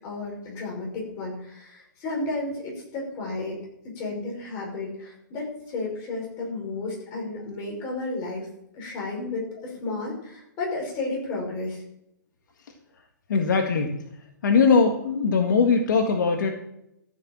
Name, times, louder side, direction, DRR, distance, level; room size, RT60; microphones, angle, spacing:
voice 1, 0.0-3.6 4.0-8.5 8.7-11.8, left 2 dB, 25° left, -2 dB, 5.6 m, -32 dB
voice 2, 13.3-13.9 14.4-16.5, left 5 dB, 65° left, 4 dB, 1.8 m, -20 dB
14.5 x 6.7 x 7.5 m, 0.78 s
hypercardioid pair, 165°, 11 cm